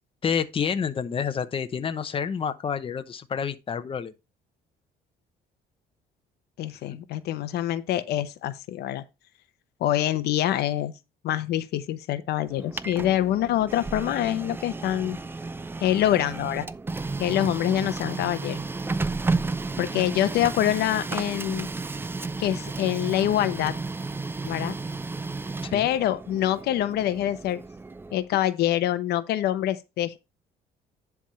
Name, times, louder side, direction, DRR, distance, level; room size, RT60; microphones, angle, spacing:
voice 1, 0.2-4.1 25.6-25.9, left 7 dB, 30° left, 0.8 m, -29 dB
voice 2, 6.6-9.0 9.8-10.9 11.2-15.2 15.8-16.7 17.2-18.6 19.8-21.7 22.4-23.7 24.4-24.8 25.7-27.6 28.1-30.2, left 12 dB, 75° left, 0.8 m, -25 dB
Printer, 12.5-28.3, right 3 dB, 15° right, 0.5 m, -33 dB
10.5 x 3.6 x 5.6 m
cardioid pair, 110°, 17 cm